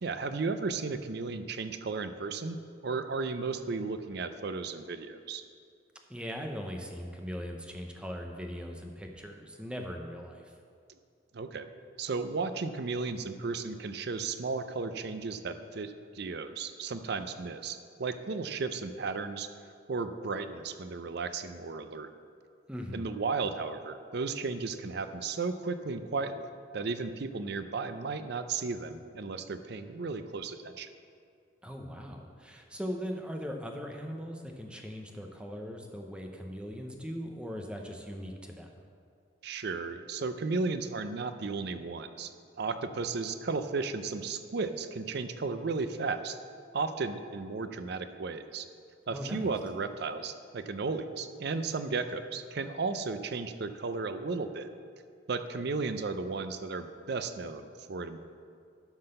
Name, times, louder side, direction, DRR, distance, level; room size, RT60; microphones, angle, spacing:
voice 1, 0.0-2.6 2.8-5.4 11.3-11.7 12.0-19.5 19.9-22.1 22.9-30.9 39.4-42.3 42.6-46.4 46.7-48.7 49.1-54.7 55.3-58.2, right 4 dB, 55° right, 10 dB, 0.5 m, -34 dB
voice 2, 6.1-10.6 22.7-23.1 31.6-38.7 49.1-49.5, equal, 5° right, 2 dB, 0.7 m, -39 dB
11.5 x 3.9 x 6.6 m, 2.3 s
head